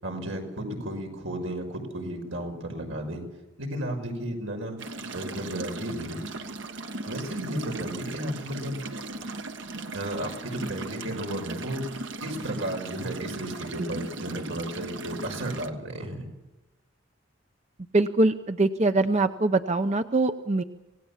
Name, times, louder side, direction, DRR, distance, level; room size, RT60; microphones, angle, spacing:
voice 1, 0.0-3.2 3.6-4.8 5.1-6.2 7.1-8.8 9.9-11.9 12.2-16.3, right 1 dB, 90° right, 3 dB, 5.7 m, -33 dB
sound 1, 4.8-15.7, right 2 dB, 65° right, 1.5 m, -38 dB
voice 2, 17.9-20.6, right 2 dB, 35° right, 9 dB, 0.7 m, -23 dB
26.5 x 18.0 x 7.3 m, 1.1 s
head